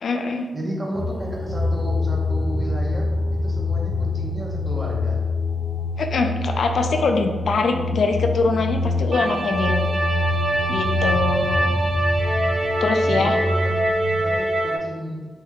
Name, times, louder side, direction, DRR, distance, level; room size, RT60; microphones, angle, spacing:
voice 1, 0.0-0.5 6.0-9.9 10.7-11.7 12.8-13.4, left 4 dB, 65° left, 5 dB, 0.3 m, -23 dB
voice 2, 0.5-5.2 12.9-15.3, right 1 dB, 20° right, -3 dB, 1.0 m, -33 dB
sound 1, 0.9-14.4, left 2 dB, 20° left, 1.3 m, -25 dB
sound 2, 9.1-14.8, right 1 dB, 45° right, 0.6 m, -24 dB
4.5 x 3.3 x 2.3 m, 1.3 s
cardioid pair, 75°, 0 cm